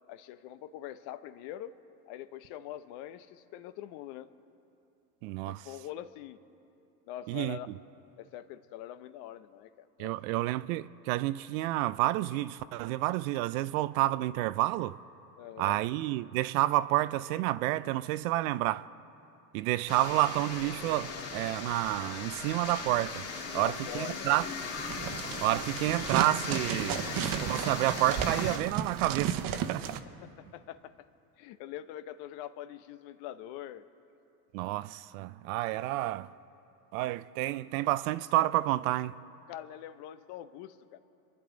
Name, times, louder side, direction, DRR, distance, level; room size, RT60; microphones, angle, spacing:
voice 1, 0.1-1.7 2.1-4.3 5.5-6.4 7.1-7.7 8.2-10.1 15.4-15.8 23.5-24.4 30.0-31.1 31.4-33.9 35.8-35.9 39.5-41.0, left 12 dB, 55° left, 0.9 m, -44 dB
voice 2, 5.2-5.6 7.3-7.6 10.0-15.0 15.6-18.9 19.5-23.2 23.5-24.5 25.4-30.0 34.5-36.3 36.9-39.1, right 16 dB, 60° right, 0.6 m, -29 dB
sound 1, 19.9-28.6, left 4 dB, 30° left, 2.2 m, -38 dB
sound 2, 24.8-30.0, right 9 dB, 45° right, 1.1 m, -34 dB
27.0 x 10.5 x 3.8 m
hypercardioid pair, 95°, 49 cm